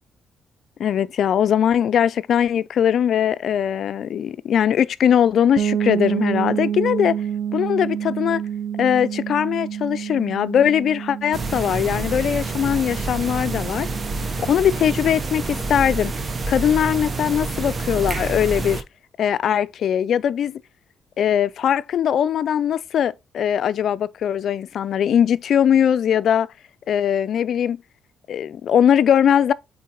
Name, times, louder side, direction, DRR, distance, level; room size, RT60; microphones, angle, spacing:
voice 1, 0.8-7.2 7.5-8.4 8.8-13.9 14.5-16.1 16.5-18.8 19.2-20.6 21.2-26.5 26.9-27.8 28.3-29.5, left 9 dB, 65° left, 0.4 m, -20 dB
sound 1, 5.6-15.2, right 9 dB, 75° right, 0.6 m, -29 dB
sound 2, 11.3-18.8, right 3 dB, 35° right, 0.9 m, -28 dB
8.4 x 3.8 x 2.9 m
cardioid pair, 90°, 0 cm